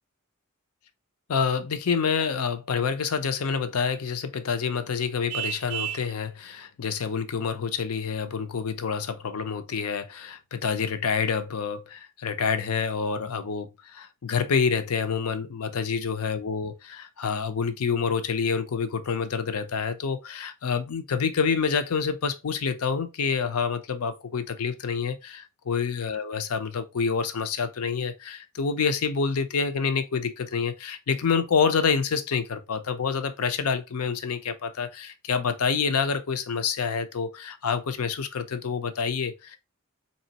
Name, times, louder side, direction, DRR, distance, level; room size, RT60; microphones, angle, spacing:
voice 1, 1.3-39.6, left 6 dB, 90° left, 0.6 m, -27 dB
Vehicle horn car horn honking, 5.3-6.1, right 11 dB, 75° right, 0.4 m, -32 dB
4.2 x 2.9 x 2.8 m
head